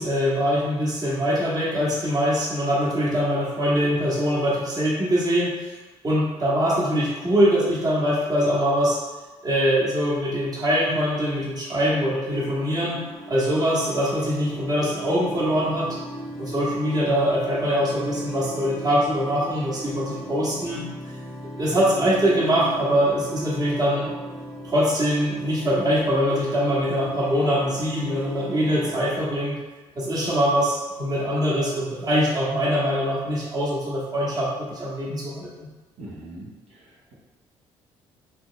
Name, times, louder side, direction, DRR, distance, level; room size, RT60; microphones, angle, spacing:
voice 1, 0.0-5.8 6.0-9.0 9.4-13.0 13.3-15.9 16.4-20.8 21.6-24.1 24.6-29.6 30.0-35.7, equal, 35° right, -6 dB, 1.2 m, -23 dB
sound 1, 12.3-29.0, equal, ahead, 0.9 m, -38 dB
voice 2, 36.0-37.1, right 1 dB, 65° right, -8 dB, 1.0 m, -42 dB
4.0 x 3.0 x 2.2 m, 1.2 s
supercardioid pair, 65°, 12 cm